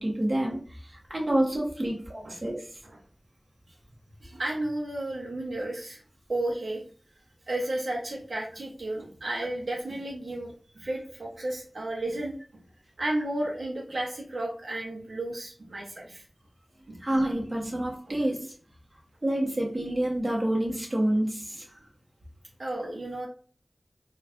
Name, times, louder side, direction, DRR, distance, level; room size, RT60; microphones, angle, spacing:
voice 1, 0.0-2.8 17.0-18.5 19.2-21.6, right 1 dB, 40° right, -2 dB, 1.1 m, -28 dB
voice 2, 4.2-6.0 6.3-6.8 7.5-12.6 13.0-16.2 16.9-17.0 17.7-17.8 18.1-18.2 22.6-23.3, right 1 dB, 85° right, -2 dB, 0.7 m, -33 dB
4.2 x 2.3 x 2.4 m, 0.43 s
wide cardioid pair, 45°, 0 cm